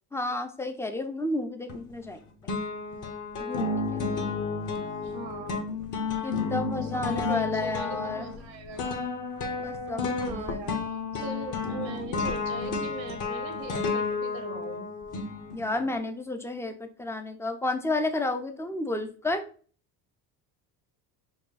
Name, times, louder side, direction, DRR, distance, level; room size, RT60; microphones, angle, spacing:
voice 1, 0.1-2.5 3.4-4.2 6.2-8.3 9.6-10.7 15.5-19.5, left 2 dB, 5° left, 6 dB, 0.4 m, -31 dB
sound 1, 1.7-2.2 2.5-15.9, left 4 dB, 40° left, 0.9 m, -32 dB
voice 2, 5.0-5.6 6.7-9.0 9.4-9.7 10.1-10.8 11.1-14.9, right 3 dB, 90° right, 5 dB, 1.3 m, -40 dB
4.8 x 2.3 x 3.9 m, 0.42 s
hypercardioid pair, 75°, 50 cm